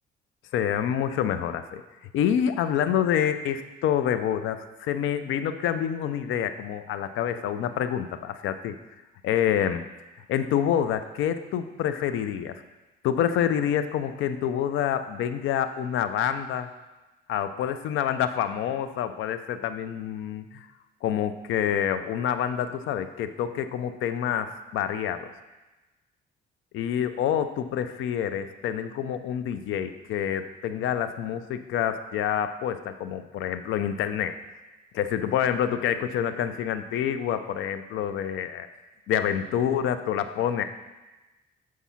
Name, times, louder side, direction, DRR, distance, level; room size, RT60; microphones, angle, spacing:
voice 1, 0.5-1.8 2.1-8.8 9.2-9.8 10.3-12.5 13.0-16.7 17.3-20.7 21.0-25.3 26.7-34.3 34.9-38.7 39.1-40.6, left 9 dB, 80° left, 10 dB, 0.5 m, -27 dB
7.3 x 4.7 x 5.6 m, 1.1 s
cardioid pair, 90°, 20 cm